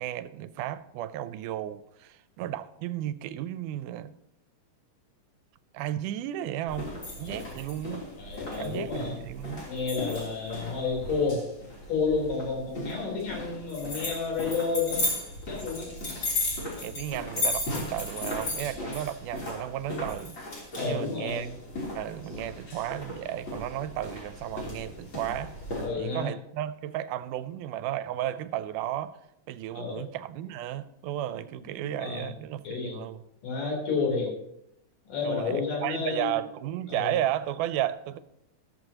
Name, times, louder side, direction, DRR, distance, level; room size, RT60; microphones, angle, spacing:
voice 1, 0.0-4.1 5.7-6.9 7.2-8.1 8.6-9.7 16.2-16.4 16.8-20.4 20.8-21.5 21.9-25.6 26.0-29.2 29.5-33.2 35.2-38.2, right 12 dB, 85° right, 2.1 m, -33 dB
sound 1, 6.7-25.9, left 1 dB, 35° left, 3.7 m, -35 dB
voice 2, 8.2-9.2 9.6-11.4 11.9-15.0 15.5-15.9 20.7-21.5 25.8-26.3 29.7-30.0 31.9-32.3 32.6-33.0 33.4-34.3 35.1-36.4 36.9-37.1, left 4 dB, 80° left, 5.2 m, -30 dB
14.0 x 13.5 x 2.9 m
omnidirectional pair, 3.7 m